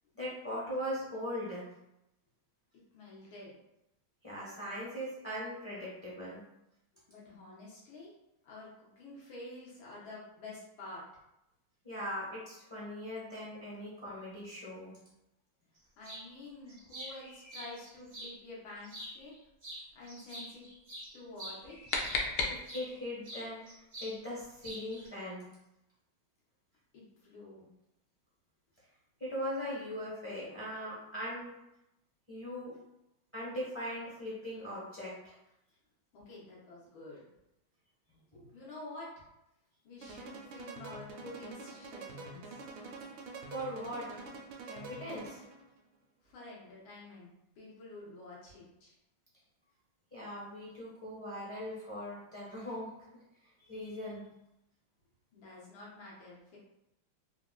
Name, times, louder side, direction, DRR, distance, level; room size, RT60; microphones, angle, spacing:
voice 1, 0.1-1.7 4.2-6.4 11.8-15.0 22.4-25.4 29.2-31.5 32.3-32.7 33.3-35.3 38.3-38.5 43.4-44.2 44.6-45.4 50.1-52.9 53.6-54.2, equal, 10° left, -7 dB, 0.6 m, -40 dB
voice 2, 2.9-3.5 7.1-8.1 8.4-11.0 16.0-19.3 20.0-20.7 21.1-21.8 26.9-27.7 36.1-37.2 38.5-39.2 39.8-42.7 46.2-48.9 55.3-56.6, left 2 dB, 85° left, -5 dB, 1.8 m, -49 dB
sound 1, 16.0-16.3 16.7-18.3 18.8-19.4 19.6-22.9 23.2-24.2 24.4-25.1, equal, 50° right, 0.4 m, -46 dB
sound 2, 21.4-23.1, left 3 dB, 70° left, 1.0 m, -35 dB
sound 3, 40.0-45.7, right 3 dB, 75° right, 1.3 m, -46 dB
3.9 x 2.4 x 2.3 m, 0.87 s
omnidirectional pair, 2.2 m